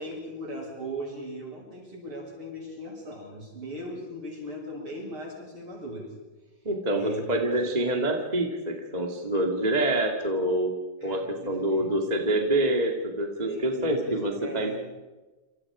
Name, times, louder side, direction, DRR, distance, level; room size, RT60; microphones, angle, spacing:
voice 1, 0.0-6.1 6.9-7.2 7.6-7.8 11.0-11.9 13.4-14.8, right 1 dB, 35° right, -1 dB, 8.6 m, -38 dB
voice 2, 6.6-10.7 11.0-14.7, right 1 dB, 15° right, 2 dB, 1.6 m, -26 dB
28.0 x 28.0 x 5.0 m, 1.2 s
omnidirectional pair, 4.0 m